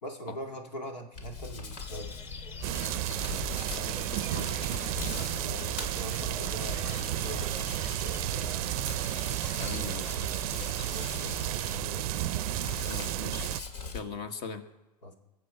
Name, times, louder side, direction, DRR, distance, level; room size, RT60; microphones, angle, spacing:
voice 1, 0.0-2.1 5.1-8.8 10.9-13.2 15.0-15.1, equal, 90° left, 3 dB, 2.2 m, -43 dB
Hands, 1.1-14.0, left 4 dB, 70° left, 2.3 m, -41 dB
sound 1, 1.8-11.8, left 4 dB, 30° left, 2.2 m, -46 dB
sound 2, 2.6-13.6, right 17 dB, 60° right, 0.5 m, -32 dB
voice 2, 3.7-4.5 9.6-10.0 12.9-13.5 13.9-14.6, left 5 dB, 50° left, 7 dB, 1.7 m, -39 dB
21.5 x 7.8 x 4.5 m, 1.0 s
hypercardioid pair, 105°, 21 cm